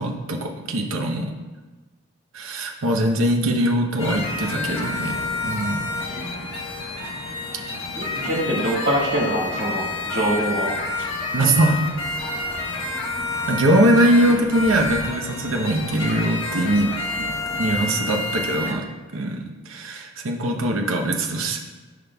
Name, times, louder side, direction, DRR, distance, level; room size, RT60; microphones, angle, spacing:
voice 1, 0.0-1.3 2.3-5.9 11.3-11.8 13.5-18.8 19.1-21.6, right 1 dB, 80° right, 3 dB, 0.9 m, -22 dB
sound 1, 4.0-18.7, left 2 dB, 85° left, 1.2 m, -29 dB
voice 2, 8.0-10.7, right 1 dB, 55° right, -4 dB, 1.7 m, -24 dB
11.0 x 5.2 x 2.3 m, 1.3 s
head